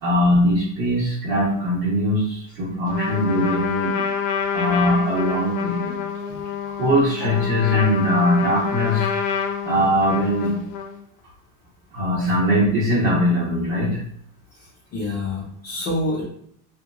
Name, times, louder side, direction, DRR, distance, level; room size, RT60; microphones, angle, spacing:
voice 1, 0.0-4.1 4.5-5.9 6.6-9.1 9.6-10.5 11.9-14.0, equal, 75° right, -6 dB, 1.1 m, -21 dB
Trumpet, 2.9-11.0, left 7 dB, 90° left, 0.7 m, -27 dB
voice 2, 14.9-16.2, left 2 dB, 25° left, -7 dB, 0.4 m, -27 dB
2.9 x 2.7 x 2.4 m, 0.67 s
cardioid pair, 175°, 46 cm